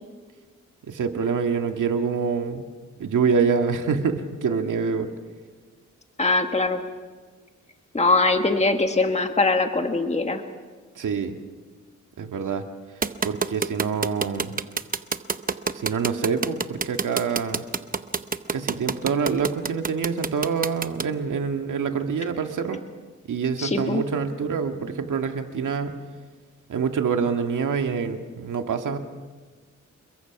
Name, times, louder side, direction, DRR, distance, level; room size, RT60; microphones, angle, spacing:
voice 1, 0.9-2.7 3.0-5.1 11.0-11.4 12.2-12.6 13.2-14.6 15.7-17.6 18.5-22.8 23.3-25.9 26.7-29.0, right 6 dB, 80° right, 5 dB, 2.0 m, -26 dB
voice 2, 6.2-6.8 7.9-10.4 23.6-24.0, left 3 dB, 20° left, 5 dB, 1.6 m, -22 dB
sound 1, 13.0-21.0, right 5 dB, 30° right, 0.8 m, -26 dB
28.5 x 22.0 x 6.0 m, 1.4 s
wide cardioid pair, 110°, 30 cm